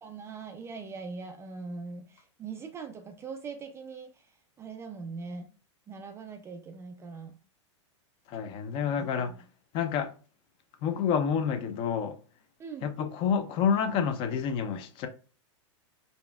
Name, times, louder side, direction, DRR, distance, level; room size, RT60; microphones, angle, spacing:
voice 1, 0.0-4.1 4.6-5.5 5.9-7.4 8.8-9.4 12.6-12.9, right 4 dB, 15° right, 0.4 m, -41 dB
voice 2, 8.3-9.3 9.7-10.1 10.8-12.2 12.8-15.1, left 7 dB, 35° left, 0.5 m, -28 dB
4.1 x 3.4 x 2.3 m
supercardioid pair, 140°, 16 cm